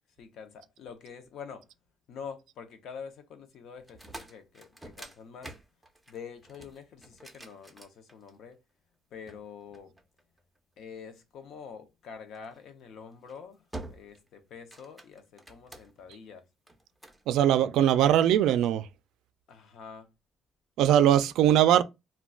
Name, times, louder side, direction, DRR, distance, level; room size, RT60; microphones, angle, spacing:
voice 1, 0.2-1.7 2.1-5.5 6.1-8.6 9.1-9.9 10.8-16.4 19.5-20.1, left 6 dB, 65° left, 0.6 m, -46 dB
sound 1, 3.8-8.5 9.3-10.6 12.3-12.6 13.1-13.4 13.7-14.3 14.6-16.1 16.7-17.2, right 2 dB, 5° right, 0.4 m, -47 dB
voice 2, 17.3-18.9 20.8-21.8, right 11 dB, 85° right, 0.3 m, -21 dB
2.3 x 2.2 x 3.6 m
cardioid pair, 145°, 0 cm